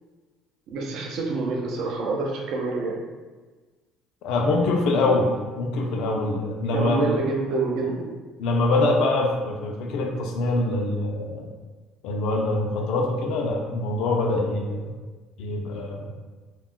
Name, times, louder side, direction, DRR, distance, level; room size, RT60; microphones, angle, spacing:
voice 1, 0.7-3.0 6.7-8.1, right 3 dB, 65° right, 0 dB, 0.5 m, -27 dB
voice 2, 4.2-7.0 8.4-11.5 12.0-14.9 15.4-16.1, left 2 dB, 70° left, 1 dB, 0.4 m, -24 dB
2.3 x 2.1 x 3.6 m, 1.3 s
cardioid pair, 115°, 0 cm